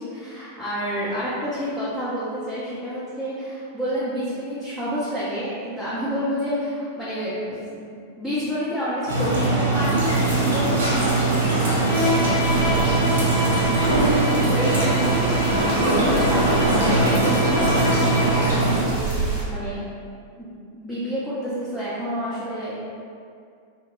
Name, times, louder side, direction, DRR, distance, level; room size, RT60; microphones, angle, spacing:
voice 1, 0.0-7.9 8.2-19.8 20.4-22.7, equal, 5° right, -12 dB, 0.6 m, -29 dB
sound 1, 9.1-18.8, right 2 dB, 65° right, 0.6 m, -21 dB
sound 2, 10.0-19.4, right 3 dB, 40° right, 0.9 m, -32 dB
Bowed string instrument, 11.8-18.5, left 2 dB, 45° left, 0.7 m, -28 dB
2.1 x 2.0 x 3.3 m, 2.3 s
figure-of-eight pair, 90°, 0 cm